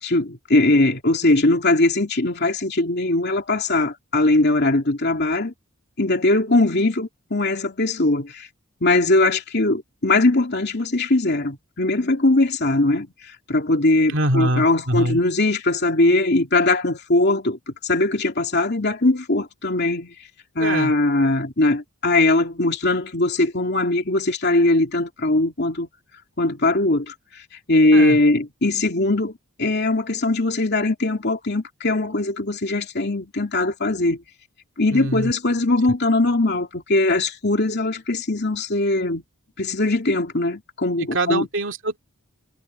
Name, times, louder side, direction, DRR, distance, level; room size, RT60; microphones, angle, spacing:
voice 1, 0.0-5.5 6.0-8.5 8.8-13.1 13.5-20.1 20.5-25.9 26.4-27.4 27.7-29.3 29.6-34.2 34.8-39.2 39.6-41.5, left 2 dB, 50° left, 2.7 m, -20 dB
voice 2, 14.1-15.2 20.6-20.9 27.9-28.2 34.9-35.3 41.1-42.0, right 1 dB, 60° right, 2.5 m, -24 dB
head